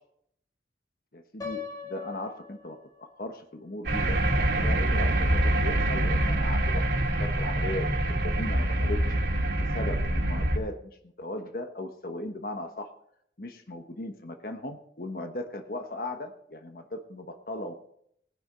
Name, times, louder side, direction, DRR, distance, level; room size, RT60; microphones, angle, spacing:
voice 1, 1.1-6.9 7.2-9.0 9.7-12.9 13.4-17.7, left 1 dB, 55° left, 6 dB, 1.2 m, -37 dB
Piano, 1.4-3.4, left 7 dB, 20° left, 2.4 m, -40 dB
sound 1, 3.8-10.6, right 1 dB, 75° right, 2.6 m, -25 dB
20.0 x 10.0 x 3.9 m, 0.70 s
head